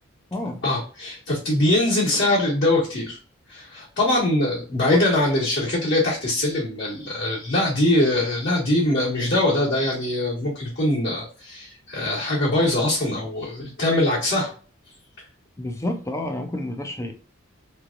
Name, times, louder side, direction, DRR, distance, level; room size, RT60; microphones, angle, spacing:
voice 1, 0.6-3.2 3.5-14.5, left 1 dB, 50° left, 1.4 m, -22 dB
voice 2, 15.6-17.1, left 1 dB, 15° left, 0.5 m, -29 dB
3.5 x 3.2 x 2.4 m
head